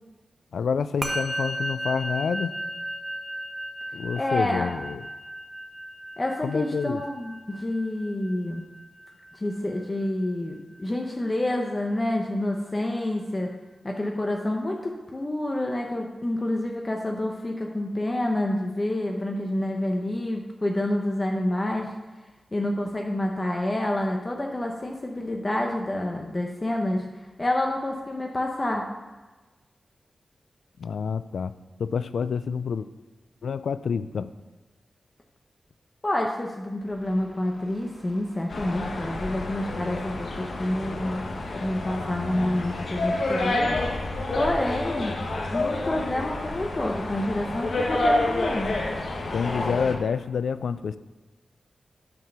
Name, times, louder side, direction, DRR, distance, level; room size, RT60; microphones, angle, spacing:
voice 1, 0.5-2.5 3.9-5.1 6.4-7.0 30.8-31.5 31.8-32.9 33.4-34.3 41.9-42.7 49.3-51.0, left 6 dB, 90° left, 14 dB, 0.4 m, -28 dB
Musical instrument, 1.0-10.5, right 1 dB, 25° right, 1.2 m, -35 dB
voice 2, 4.2-4.7 6.2-8.6 9.3-13.5 13.8-21.9 22.5-27.0 27.4-28.9 36.0-43.7 44.3-45.1 45.5-48.7, left 1 dB, 30° left, 1 dB, 1.0 m, -28 dB
sound 1, 36.8-42.1, left 5 dB, 10° left, 2.5 m, -46 dB
sound 2, 38.5-50.0, left 2 dB, 70° left, 1.2 m, -29 dB
9.5 x 4.6 x 6.7 m, 1.2 s
cardioid pair, 65°, 0 cm